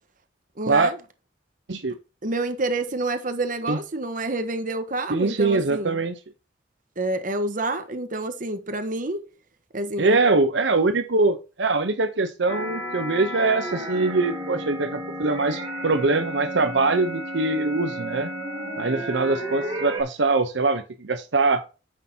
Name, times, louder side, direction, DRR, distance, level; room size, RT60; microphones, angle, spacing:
voice 1, 0.6-1.0 2.2-6.0 7.0-9.2 9.7-10.2, right 2 dB, 45° right, 1.2 m, -28 dB
voice 2, 5.1-6.1 10.0-18.3 18.8-21.6, right 3 dB, 70° right, 0.8 m, -23 dB
sound 1, 12.5-20.0, right 1 dB, 25° right, 3.0 m, -32 dB
9.2 x 6.5 x 2.8 m
head